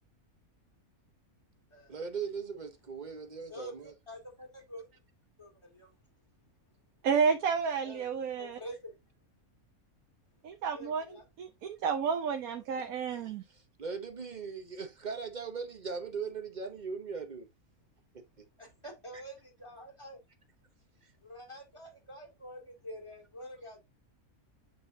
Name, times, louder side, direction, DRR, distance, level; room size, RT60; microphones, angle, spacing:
voice 1, 1.9-3.9 13.8-17.5, right 5 dB, 35° right, 1.0 m, -39 dB
voice 2, 3.3-4.9 5.4-5.9 7.8-8.1 8.4-9.0 10.7-11.3 18.6-20.2 21.2-23.8, equal, 20° left, 2.5 m, -47 dB
voice 3, 7.0-8.6 10.4-13.4, right 6 dB, 80° right, 1.3 m, -31 dB
8.8 x 4.7 x 2.7 m
omnidirectional pair, 1.5 m